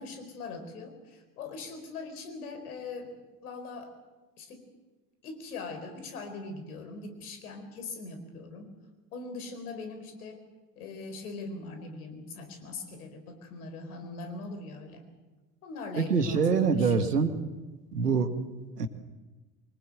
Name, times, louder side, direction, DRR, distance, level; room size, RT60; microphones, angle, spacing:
voice 1, 0.0-3.1 3.4-4.0 4.4-4.7 5.2-8.8 9.1-10.4 10.8-15.0 15.6-17.2, left 3 dB, 70° left, 7 dB, 4.5 m, -41 dB
voice 2, 16.0-17.3 17.9-18.3 18.8-18.9, right 5 dB, 85° right, 9 dB, 1.8 m, -25 dB
24.5 x 19.5 x 7.9 m, 1.2 s
figure-of-eight pair, 70°, 46 cm